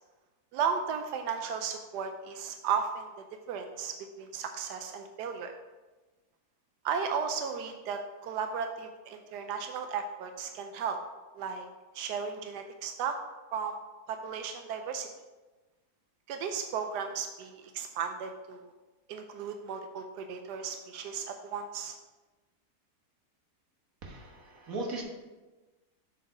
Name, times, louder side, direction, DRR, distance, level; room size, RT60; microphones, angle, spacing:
voice 1, 0.5-3.1 3.5-5.5 6.8-11.0 11.3-11.7 11.9-13.2 13.5-13.8 14.1-15.1 16.3-18.7 19.1-22.0, right 6 dB, 90° right, 6 dB, 1.2 m, -35 dB
voice 2, 24.0-25.0, right 2 dB, 60° right, 0 dB, 1.7 m, -38 dB
7.8 x 4.7 x 5.1 m, 1.2 s
omnidirectional pair, 1.7 m